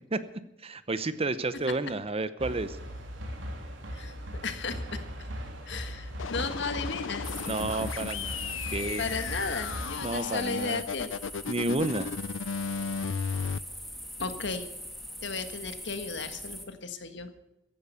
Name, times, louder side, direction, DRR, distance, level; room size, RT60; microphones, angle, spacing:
voice 1, 0.6-2.8 7.4-9.1 10.0-10.8 11.5-12.2, right 2 dB, 30° right, 14 dB, 0.8 m, -31 dB
sound 1, 2.4-9.9, equal, 85° right, 3.2 m, -39 dB
voice 2, 4.4-5.0 5.7-7.4 9.0-11.1 14.2-14.7 15.2-17.3, left 4 dB, 65° left, 9 dB, 1.6 m, -34 dB
sound 2, 6.2-13.6, left 6 dB, 90° left, 0.5 m, -35 dB
sound 3, 7.2-16.7, equal, ahead, 2.2 m, -42 dB
15.5 x 11.0 x 6.8 m, 0.92 s
head